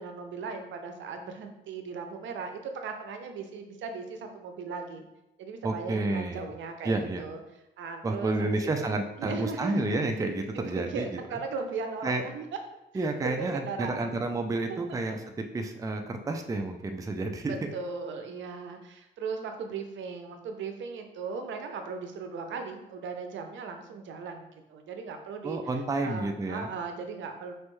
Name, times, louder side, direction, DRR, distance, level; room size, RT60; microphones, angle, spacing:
voice 1, 0.0-5.0 5.4-7.4 7.8-8.9 9.2-10.1 10.5-12.5 12.9-14.2 14.7-15.0 17.7-25.6 26.0-27.5, right 5 dB, 70° right, 5 dB, 0.6 m, -37 dB
voice 2, 5.6-6.5 6.8-7.2 8.0-11.1 11.3-11.4 12.0-12.2 12.9-15.2 15.5-17.7 25.4-26.7, right 2 dB, 15° right, 5 dB, 0.4 m, -30 dB
4.5 x 3.2 x 3.1 m, 0.92 s
cardioid pair, 90°, 20 cm